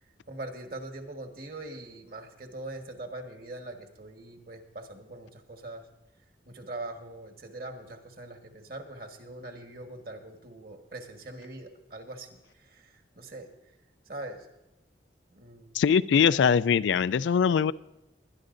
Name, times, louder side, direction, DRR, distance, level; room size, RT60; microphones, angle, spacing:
voice 1, 0.3-5.8 6.4-12.3 12.6-13.5 14.0-14.5 15.3-15.7, right 2 dB, 55° right, 4 dB, 1.4 m, -42 dB
voice 2, 15.7-17.7, left 7 dB, 90° left, 17 dB, 0.3 m, -22 dB
20.5 x 11.5 x 2.6 m, 0.96 s
head